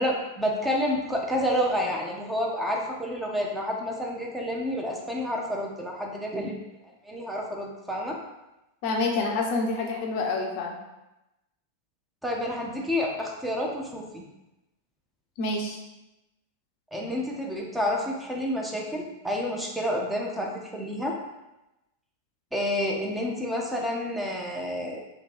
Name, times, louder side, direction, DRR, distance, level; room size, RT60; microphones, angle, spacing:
voice 1, 0.0-6.5 7.0-8.2 12.2-14.2 16.9-21.2 22.5-25.0, equal, 5° right, -2 dB, 0.7 m, -29 dB
voice 2, 8.8-10.7 15.4-15.8, left 3 dB, 45° left, 1 dB, 0.6 m, -27 dB
3.0 x 3.0 x 4.2 m, 0.96 s
figure-of-eight pair, 90°, 0 cm